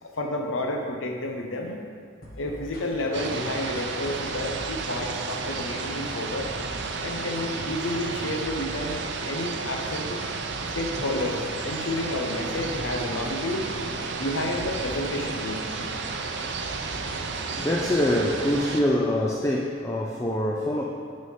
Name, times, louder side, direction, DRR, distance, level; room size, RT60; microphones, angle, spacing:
voice 1, 0.0-1.8 2.4-6.5 7.0-9.0 9.2-10.2 10.7-13.7 14.2-15.7, left 1 dB, 85° left, 2 dB, 0.8 m, -30 dB
sound 1, 2.2-18.6, left 1 dB, 50° left, 1.2 m, -43 dB
sound 2, 3.1-18.8, right 4 dB, 60° right, 0.6 m, -32 dB
voice 2, 17.4-20.8, left 1 dB, 15° left, -2 dB, 0.5 m, -25 dB
10.5 x 4.2 x 4.9 m, 2.2 s
head